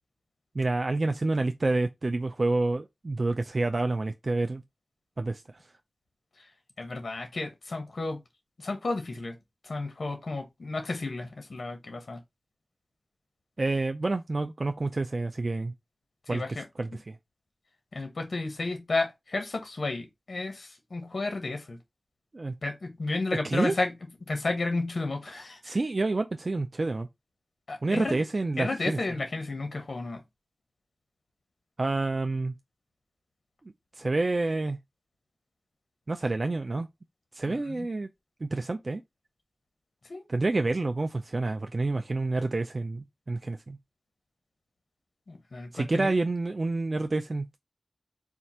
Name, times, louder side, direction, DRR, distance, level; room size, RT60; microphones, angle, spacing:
voice 1, 0.6-4.6 5.2-5.4 13.6-15.7 16.3-16.4 16.8-17.1 22.3-22.5 23.4-23.8 25.6-27.1 27.8-29.0 31.8-32.5 34.0-34.8 36.1-36.9 37.3-38.1 38.4-39.0 40.3-43.8 45.7-47.6, right 2 dB, 55° right, 0.4 m, -28 dB
voice 2, 6.8-8.2 8.6-9.3 9.6-12.2 16.3-16.6 17.9-21.8 22.6-23.9 24.2-25.8 27.7-28.1 28.6-30.2 37.5-37.9 40.1-40.2 45.3-46.1, left 3 dB, 80° left, 1.0 m, -32 dB
4.4 x 2.4 x 4.2 m
wide cardioid pair, 50°, 0 cm